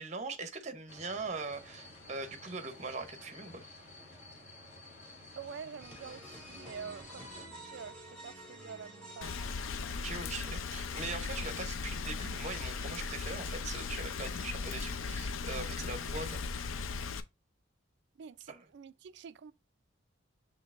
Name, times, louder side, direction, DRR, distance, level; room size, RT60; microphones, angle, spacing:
voice 1, 0.0-3.6 9.9-16.4 18.5-18.6, right 3 dB, 35° right, 0.8 m, -41 dB
sound 1, 0.9-7.5, left 2 dB, 35° left, 1.5 m, -52 dB
voice 2, 5.4-7.4 7.7-9.4 18.1-19.5, right 6 dB, 55° right, 0.3 m, -47 dB
sound 2, 5.8-10.4, right 1 dB, 5° left, 1.7 m, -50 dB
Rain, 9.2-17.2, left 5 dB, 80° left, 0.5 m, -37 dB
6.3 x 3.2 x 2.4 m
head